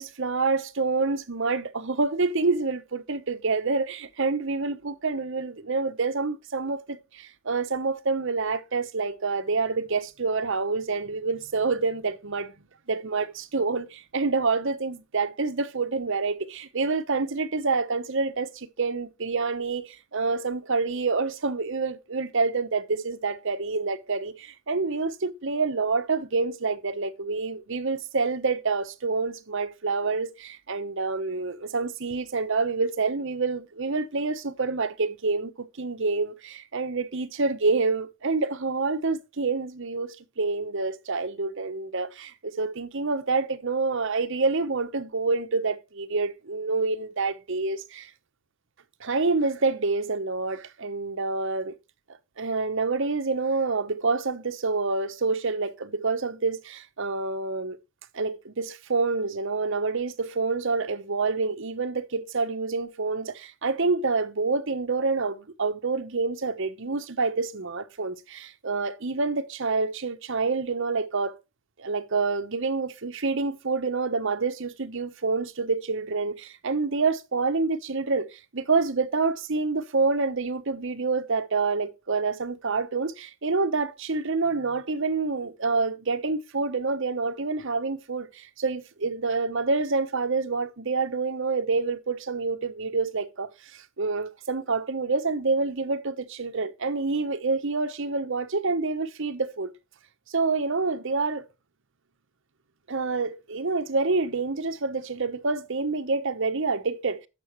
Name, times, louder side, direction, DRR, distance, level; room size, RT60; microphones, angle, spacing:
voice 1, 0.0-12.5 12.9-48.1 49.0-51.8 52.4-57.8 58.1-71.3 71.8-99.7 100.3-101.5 102.9-107.3, right 4 dB, 65° right, 1.0 m, -27 dB
11.5 x 7.0 x 3.2 m
head